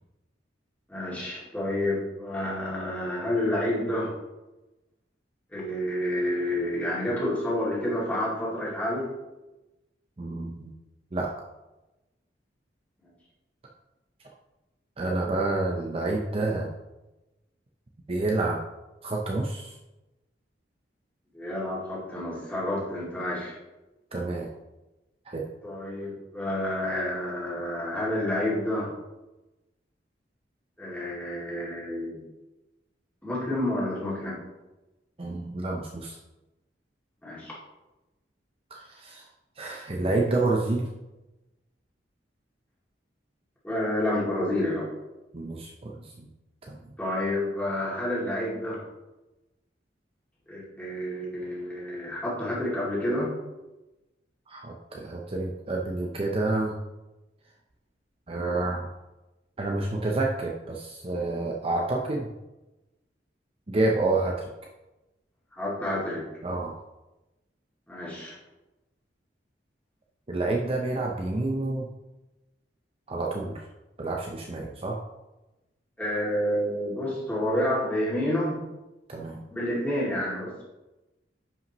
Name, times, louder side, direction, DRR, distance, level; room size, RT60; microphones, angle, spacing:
voice 1, 0.9-4.1 5.5-9.1 21.3-23.6 25.6-28.9 30.8-32.2 33.2-34.4 37.2-37.5 43.6-44.9 47.0-48.8 50.5-53.3 65.6-66.3 67.9-68.4 76.0-78.6 79.5-80.6, left 1 dB, 10° left, -7 dB, 2.5 m, -29 dB
voice 2, 10.2-10.7 11.1-11.3 15.0-16.7 18.1-18.6 19.0-19.8 24.1-24.5 25.3-25.4 35.2-36.2 38.7-39.3 39.6-40.9 45.3-46.3 46.7-46.9 54.5-56.7 58.3-58.9 59.6-62.3 63.7-64.5 66.4-66.8 70.3-71.9 73.1-73.7 74.0-75.0 79.1-79.4, right 2 dB, 30° right, 0 dB, 0.6 m, -29 dB
10.5 x 5.5 x 3.0 m, 1.0 s
head